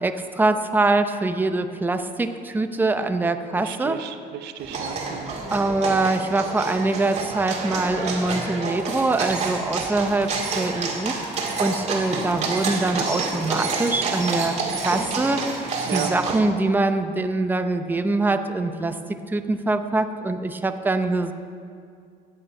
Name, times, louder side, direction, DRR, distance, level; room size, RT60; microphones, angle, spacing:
voice 1, 0.0-4.0 5.5-19.0 19.3-21.3, right 2 dB, 10° right, 7 dB, 0.7 m, -24 dB
voice 2, 3.6-5.4 15.9-16.1, right 11 dB, 85° right, 9 dB, 0.8 m, -34 dB
sound 1, 4.6-16.4, right 4 dB, 40° right, 2.3 m, -28 dB
15.5 x 8.8 x 5.4 m, 2.3 s
cardioid pair, 110°, 17 cm